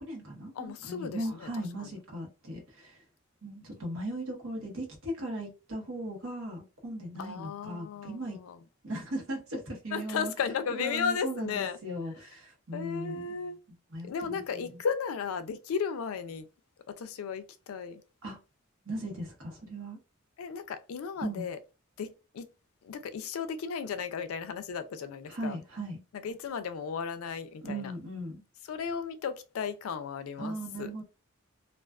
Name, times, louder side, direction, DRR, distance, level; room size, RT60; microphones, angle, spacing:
voice 1, 0.0-3.0 3.4-8.4 8.8-10.3 10.7-13.2 13.9-14.6 18.2-18.4 18.8-20.0 21.2-21.5 25.3-26.0 27.6-28.4 30.4-31.0, right 1 dB, 80° right, 1.0 m, -38 dB
voice 2, 0.5-1.9 7.2-8.6 9.9-11.8 12.7-13.6 14.0-16.5 17.0-18.0 20.4-21.6 22.0-22.5 22.8-25.6 26.1-27.9 28.7-30.9, left 6 dB, 85° left, 0.4 m, -35 dB
2.3 x 2.3 x 2.3 m
head